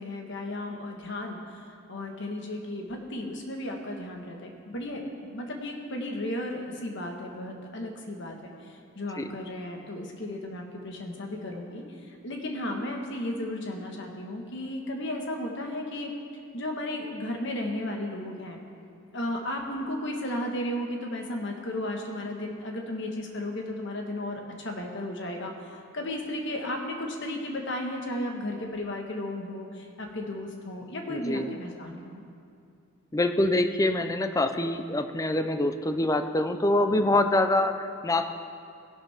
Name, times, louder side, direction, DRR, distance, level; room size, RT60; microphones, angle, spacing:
voice 1, 0.0-16.1 16.5-18.6 19.1-32.2, left 1 dB, 60° left, 2 dB, 1.5 m, -34 dB
voice 2, 31.1-31.5 33.1-38.3, left 1 dB, 15° left, 8 dB, 0.5 m, -25 dB
17.0 x 11.5 x 3.5 m, 2.4 s
head